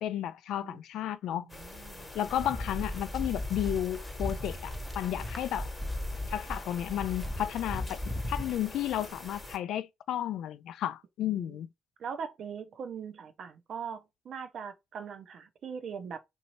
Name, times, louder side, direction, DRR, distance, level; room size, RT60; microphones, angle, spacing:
voice 1, 0.0-1.5 2.1-5.7 6.3-8.0 8.3-11.7, left 11 dB, 80° left, 0.3 m, -33 dB
voice 2, 1.3-2.1 11.3-11.6 12.0-16.2, right 6 dB, 60° right, 0.5 m, -41 dB
sound 1, 1.5-9.6, left 2 dB, 15° left, 1.0 m, -46 dB
sound 2, 2.3-8.5, left 1 dB, ahead, 0.6 m, -37 dB
2.9 x 2.7 x 2.8 m
cardioid pair, 90°, 0 cm